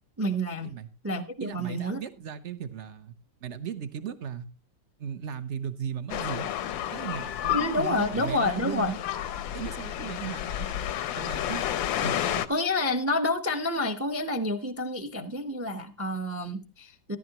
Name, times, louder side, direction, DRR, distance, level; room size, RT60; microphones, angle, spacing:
voice 1, 0.2-0.8 1.0-2.0 7.5-8.9 12.5-17.2, left 1 dB, 15° right, 0.5 m, -29 dB
voice 2, 1.4-3.1 3.4-4.5 5.0-6.5 6.9-9.0 9.5-10.7 11.1-11.6 12.0-12.4, right 8 dB, 50° right, 0.9 m, -37 dB
sound 1, 6.1-12.5, left 11 dB, 90° left, 1.5 m, -31 dB
13.5 x 11.5 x 3.0 m
omnidirectional pair, 2.0 m